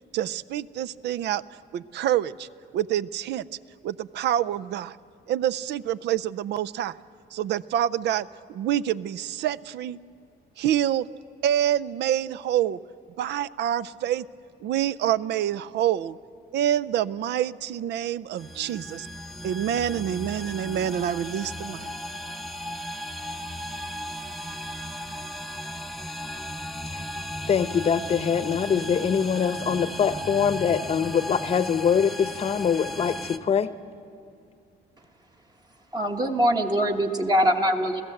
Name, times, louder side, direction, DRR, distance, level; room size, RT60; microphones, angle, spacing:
voice 1, 0.1-1.4 1.7-2.5 2.7-3.5 3.8-5.0 5.3-7.0 7.3-10.0 10.6-11.1 11.4-12.8 13.2-14.3 14.6-16.2 16.5-19.1 19.4-21.9, right 11 dB, 80° right, 18 dB, 0.5 m, -27 dB
sound 1, 18.4-33.4, equal, ahead, 0.8 m, -36 dB
voice 2, 27.5-33.7, left 7 dB, 35° left, 13 dB, 0.8 m, -23 dB
voice 3, 35.9-38.0, equal, 25° right, 3 dB, 1.2 m, -23 dB
28.5 x 15.5 x 7.7 m, 2.3 s
cardioid pair, 145°, 17 cm